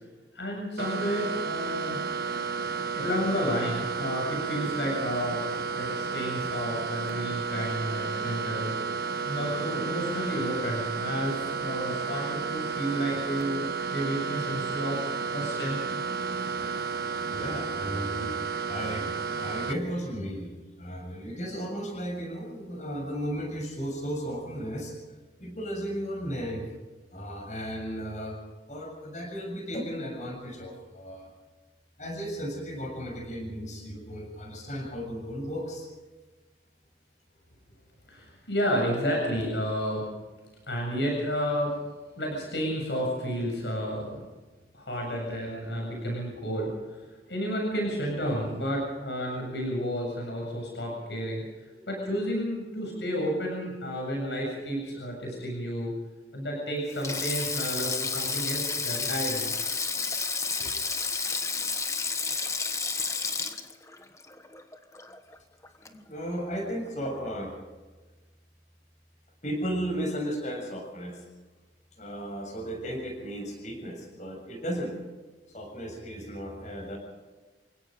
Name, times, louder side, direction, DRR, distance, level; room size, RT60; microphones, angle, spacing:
voice 1, 0.3-2.0 3.0-5.4 5.7-8.7 9.2-13.6 13.9-15.8 38.1-40.1 40.7-41.7 42.2-44.2 44.7-55.9 56.3-59.5 60.6-60.7, equal, 70° left, 0 dB, 7.6 m, -31 dB
sound 1, 0.8-19.7, right 5 dB, 55° right, 1.4 m, -32 dB
voice 2, 17.3-18.3 18.7-20.5 20.8-24.9 25.4-26.6 27.1-28.4 28.7-31.3 32.0-35.9 65.9-67.5 69.4-71.2 72.0-74.9 75.5-77.0, equal, 40° left, 2 dB, 7.0 m, -35 dB
Sink (filling or washing), 56.9-65.4 65.6-65.9 67.0-67.3, left 4 dB, 15° left, 1.3 m, -31 dB
28.5 x 17.5 x 5.3 m, 1.3 s
head